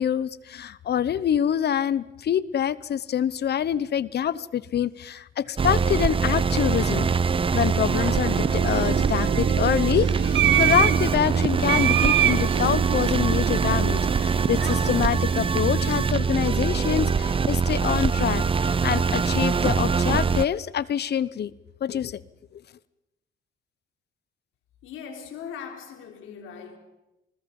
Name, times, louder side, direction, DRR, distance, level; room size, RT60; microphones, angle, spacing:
voice 1, 0.0-7.1 7.5-21.5 21.8-22.2, left 9 dB, 55° left, 0.9 m, -26 dB
sound 1, 5.6-20.5, right 5 dB, 25° right, 0.7 m, -23 dB
sound 2, 7.7-16.2, right 11 dB, 65° right, 0.8 m, -27 dB
voice 2, 24.8-26.8, left 7 dB, 90° left, 3.8 m, -39 dB
28.5 x 20.5 x 5.4 m
cardioid pair, 90°, 20 cm